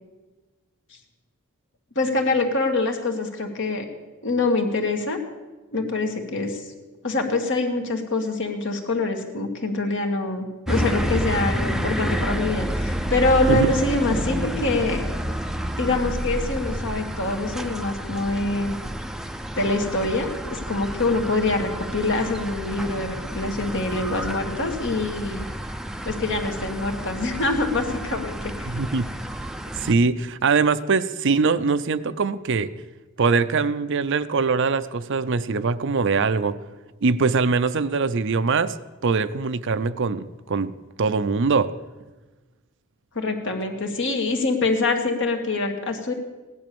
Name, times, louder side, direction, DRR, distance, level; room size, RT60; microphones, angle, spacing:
voice 1, 2.0-3.9 4.2-5.2 5.7-6.6 7.0-15.1 15.8-18.8 19.6-25.5 26.0-28.7 43.2-46.1, left 2 dB, 60° left, 4 dB, 2.1 m, -25 dB
sound 1, 10.7-29.9, equal, ahead, 0.6 m, -29 dB
voice 2, 28.6-29.1 29.8-32.7 33.2-36.6 37.0-38.8 39.0-41.7, right 4 dB, 60° right, 12 dB, 0.6 m, -22 dB
17.0 x 11.0 x 6.9 m, 1.2 s
head